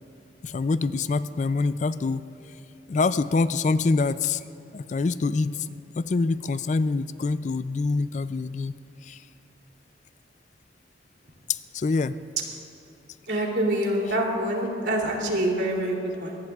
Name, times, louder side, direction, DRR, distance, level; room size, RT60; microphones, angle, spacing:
voice 1, 0.4-2.2 2.9-4.4 4.7-8.7 9.0-9.2 11.5-12.2 14.0-14.2, left 3 dB, 40° left, 14 dB, 0.3 m, -25 dB
voice 2, 13.3-16.4, right 1 dB, 70° right, -1 dB, 2.9 m, -26 dB
23.0 x 19.0 x 2.4 m, 3.0 s
head